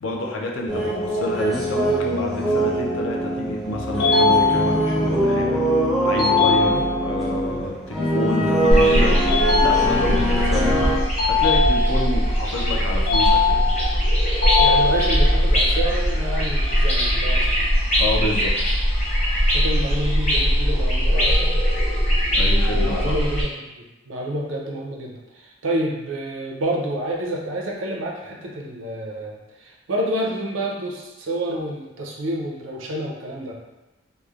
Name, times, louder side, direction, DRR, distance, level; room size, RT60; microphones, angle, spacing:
voice 1, 0.0-5.6 6.0-9.2 9.6-10.9 11.3-13.6 18.0-18.5 22.3-23.2, left 1 dB, 75° left, -1 dB, 0.4 m, -28 dB
sound 1, 0.7-11.0, right 1 dB, ahead, 0.4 m, -23 dB
sound 2, 4.0-5.0 6.2-7.2 9.3-10.3 11.2-12.2 13.1-14.0 14.4-15.4, left 4 dB, 50° left, 1.2 m, -21 dB
sound 3, 8.7-23.4, equal, 35° left, 0.8 m, -20 dB
voice 2, 14.6-17.5 19.5-21.5 22.7-33.6, right 1 dB, 75° right, -1 dB, 0.5 m, -29 dB
3.0 x 2.0 x 2.3 m, 1.0 s
head